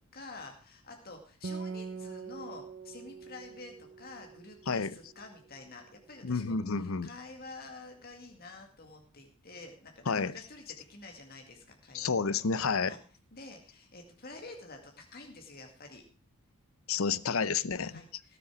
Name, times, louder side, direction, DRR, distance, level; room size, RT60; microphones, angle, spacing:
voice 1, 0.0-12.4 12.9-13.0 13.3-16.0 16.9-17.2 17.8-18.4, left 3 dB, 45° left, 3 dB, 2.1 m, -49 dB
Acoustic guitar, 1.4-5.2, right 5 dB, 50° right, 0.8 m, -43 dB
voice 2, 6.2-7.1 10.1-10.3 11.9-12.9 16.9-18.0, left 5 dB, 65° left, 18 dB, 0.7 m, -30 dB
17.5 x 7.0 x 6.1 m, 0.41 s
head